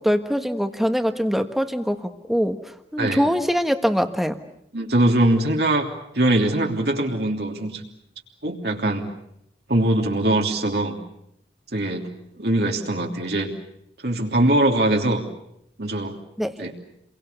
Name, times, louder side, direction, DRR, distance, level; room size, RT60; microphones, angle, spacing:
voice 1, 0.0-4.4 16.4-16.6, equal, ahead, 7 dB, 1.4 m, -23 dB
voice 2, 4.7-5.9 6.1-7.8 8.4-9.1 9.7-11.0 11.7-12.1 12.4-13.5 14.0-15.2 15.8-16.1 16.6-16.7, right 1 dB, 70° right, 1 dB, 3.1 m, -22 dB
30.0 x 23.0 x 6.9 m, 0.79 s
head